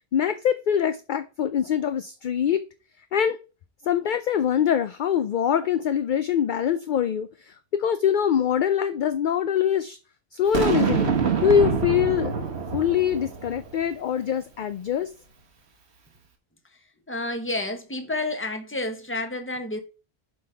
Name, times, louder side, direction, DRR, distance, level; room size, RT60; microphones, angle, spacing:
voice 1, 0.1-2.6 3.1-3.4 3.8-10.0 10.3-11.1 11.4-12.3 12.7-15.1, left 8 dB, 60° left, 0.6 m, -23 dB
Boom, 10.5-13.9, right 6 dB, 90° right, 1.5 m, -26 dB
voice 2, 17.1-19.8, left 2 dB, 10° left, 1.2 m, -30 dB
7.6 x 3.5 x 5.6 m
omnidirectional pair, 1.1 m